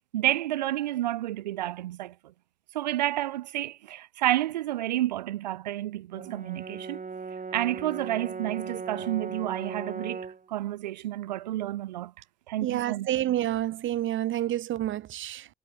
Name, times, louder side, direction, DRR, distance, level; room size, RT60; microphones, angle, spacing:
voice 1, 0.1-2.1 2.7-7.0 7.5-12.1 12.5-13.1, right 14 dB, 90° right, 1.4 m, -30 dB
Brass instrument, 6.2-10.5, right 5 dB, 40° right, 4.7 m, -38 dB
voice 2, 12.6-15.5, right 13 dB, 65° right, 2.1 m, -29 dB
hypercardioid pair, 40°, 21 cm